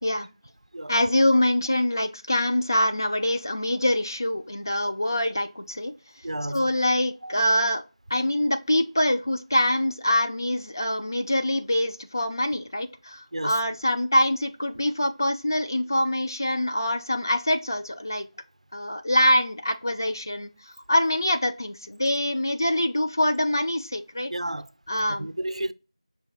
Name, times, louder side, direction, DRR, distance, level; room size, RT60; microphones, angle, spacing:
voice 1, 0.9-5.9 6.5-7.8 8.1-18.3 18.7-24.3 24.9-25.3, left 1 dB, 35° left, 0.4 m, -24 dB
voice 2, 6.2-6.7 7.2-7.4 13.3-13.6 24.3-24.7 25.1-25.7, right 1 dB, 85° right, 0.4 m, -32 dB
5.8 x 2.4 x 3.7 m
figure-of-eight pair, 175°, 3 cm